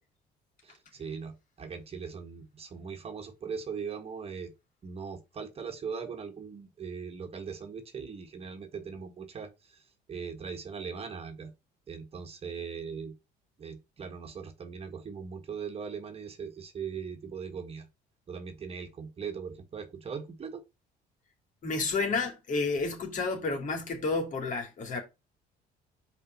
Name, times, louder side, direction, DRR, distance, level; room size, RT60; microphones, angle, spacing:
voice 1, 0.6-4.5 4.8-11.5 11.9-13.1 13.6-17.9 18.3-20.6, right 6 dB, 35° right, 1.6 m, -40 dB
voice 2, 21.6-25.0, left 3 dB, 50° left, 3.4 m, -30 dB
5.4 x 4.5 x 5.5 m
cardioid pair, 110°, 17 cm